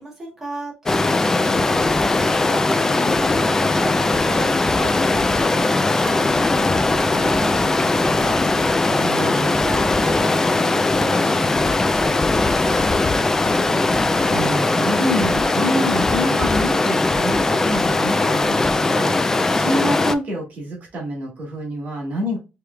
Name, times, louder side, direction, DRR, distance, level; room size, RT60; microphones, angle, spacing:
voice 1, 0.0-12.8, right 2 dB, 10° right, -4 dB, 1.7 m, -36 dB
Stream, 0.9-20.1, left 2 dB, 15° left, 0.3 m, -19 dB
voice 2, 8.9-9.6 13.4-22.4, equal, 55° right, -1 dB, 1.7 m, -27 dB
4.7 x 3.3 x 2.2 m, 0.28 s
cardioid pair, 155°, 3 cm